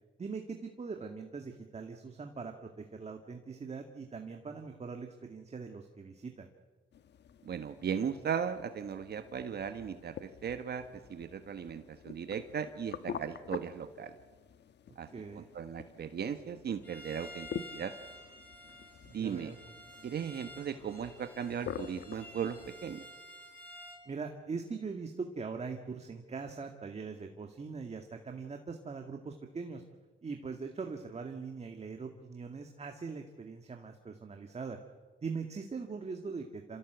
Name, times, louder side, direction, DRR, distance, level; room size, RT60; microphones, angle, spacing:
voice 1, 0.2-6.5 15.1-15.5 19.1-19.6 24.1-29.8 30.2-34.8 35.2-36.8, right 4 dB, 35° right, 4 dB, 1.9 m, -41 dB
sound 1, 6.9-23.0, left 8 dB, 60° left, 1.2 m, -47 dB
voice 2, 7.4-14.1 15.0-15.1 15.3-17.9 19.1-19.5 20.0-23.0, right 7 dB, 55° right, 9 dB, 1.4 m, -37 dB
Bowed string instrument, 16.8-24.1, equal, 10° left, 7.1 m, -51 dB
28.0 x 15.5 x 8.1 m, 1.3 s
cardioid pair, 90°, 20 cm